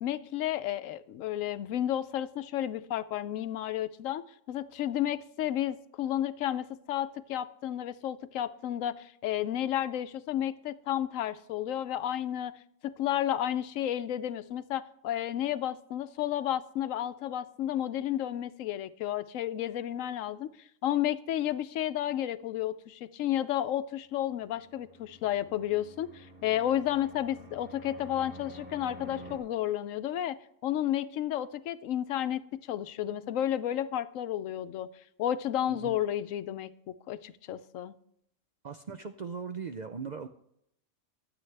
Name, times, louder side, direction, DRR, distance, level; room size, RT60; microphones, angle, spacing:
voice 1, 0.0-4.2 4.5-12.5 12.8-20.5 20.8-34.9 35.2-36.7 37.1-37.9, left 11 dB, 90° left, 14 dB, 1.0 m, -32 dB
Fixed-wing aircraft airplane, 24.5-29.4, equal, 10° right, 2.1 m, -49 dB
voice 2, 35.7-36.0 38.6-40.3, right 5 dB, 55° right, 7 dB, 0.5 m, -39 dB
23.0 x 7.8 x 3.3 m, 0.75 s
omnidirectional pair, 1.3 m